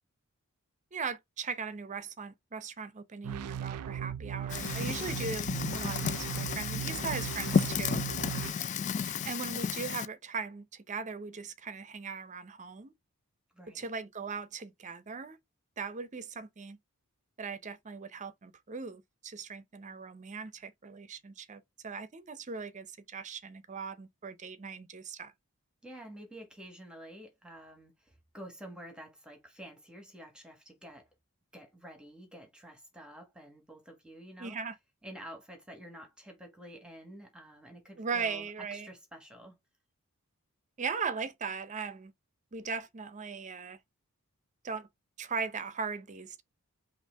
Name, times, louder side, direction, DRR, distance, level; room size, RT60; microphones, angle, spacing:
voice 1, 0.9-8.1 9.0-12.9 13.7-15.4 15.8-16.8 17.4-25.3 34.4-34.7 38.0-38.9 40.8-42.1 42.5-43.8 44.6-44.9 45.2-46.4, right 5 dB, 35° right, 0.6 m, -39 dB
sound 1, 3.2-8.5, right 9 dB, 90° right, 0.4 m, -38 dB
Fire, 4.5-10.1, left 6 dB, 35° left, 0.3 m, -33 dB
voice 2, 13.5-13.9 25.8-31.1 31.5-34.6 35.0-39.6, right 1 dB, 5° right, 1.3 m, -49 dB
5.5 x 2.5 x 3.3 m
head